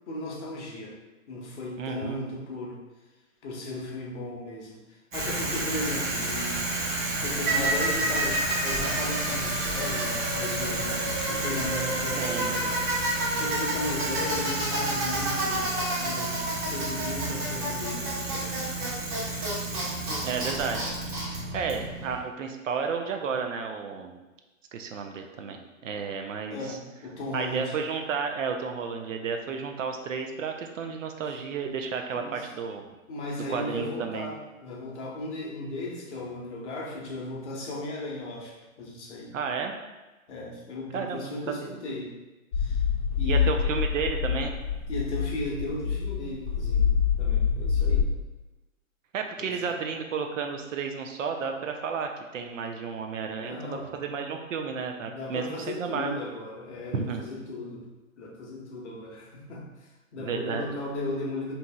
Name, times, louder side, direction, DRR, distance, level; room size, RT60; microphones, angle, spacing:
voice 1, 0.1-1.0 1.3-2.8 3.4-12.8 13.4-18.6 26.5-27.7 32.1-32.5 33.1-39.3 40.3-42.1 42.5-42.8 43.2-43.6 44.9-48.1 49.4-49.8 53.4-53.9 55.0-57.9 58.2-61.5, left 1 dB, 55° left, -2 dB, 0.8 m, -36 dB
voice 2, 1.8-2.2 12.2-12.5 20.2-20.9 21.5-24.2 24.7-26.8 27.3-32.9 33.5-34.3 39.3-39.8 40.9-41.3 41.6-41.7 43.2-44.6 49.1-56.2 56.9-57.3 60.2-60.7, right 5 dB, 65° right, 4 dB, 0.5 m, -32 dB
Bicycle, 5.1-22.2, right 1 dB, 35° right, 0.9 m, -29 dB
sound 1, 42.5-48.0, left 7 dB, 20° left, 0.5 m, -26 dB
2.8 x 2.7 x 2.2 m, 1.1 s
hypercardioid pair, 135°, 42 cm